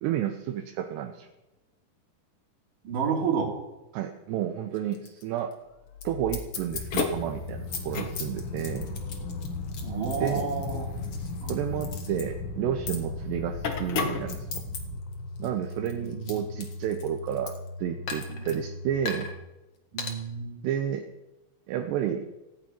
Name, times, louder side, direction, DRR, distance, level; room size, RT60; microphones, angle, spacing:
voice 1, 0.0-1.3 3.9-5.5 6.0-8.9 10.2-10.5 11.5-14.5 15.4-17.5 17.8-19.3 20.6-21.1 21.7-22.3, right 10 dB, 80° right, 5 dB, 3.0 m, -31 dB
voice 2, 2.8-3.5 9.8-11.0 11.4-11.6 16.0-16.4 18.3-18.5 19.9-20.7, right 6 dB, 50° right, 0 dB, 4.1 m, -30 dB
sound 1, 4.7-5.2 5.5-5.6 6.0-6.1 6.3-7.0 7.5-11.5 11.8-12.2 12.9-13.0 13.7-14.8 15.1-17.7 18.1-18.6 19.0-19.3 20.0-20.1, left 5 dB, 50° left, 2.0 m, -38 dB
sound 2, 5.7-19.4, left 2 dB, 85° left, 3.7 m, -40 dB
sound 3, 6.7-15.0, left 4 dB, 65° left, 1.4 m, -35 dB
17.5 x 16.0 x 4.6 m, 1.0 s
omnidirectional pair, 5.0 m